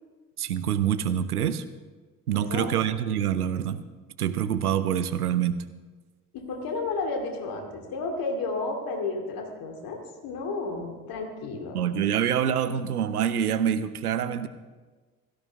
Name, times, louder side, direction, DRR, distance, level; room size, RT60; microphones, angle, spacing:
voice 1, 0.4-1.6 2.3-3.8 4.2-5.6 11.7-14.5, right 9 dB, 80° right, 12 dB, 0.7 m, -26 dB
voice 2, 6.3-11.8, left 3 dB, 50° left, 2 dB, 2.6 m, -32 dB
16.5 x 13.5 x 3.6 m, 1.3 s
figure-of-eight pair, 55°, 44 cm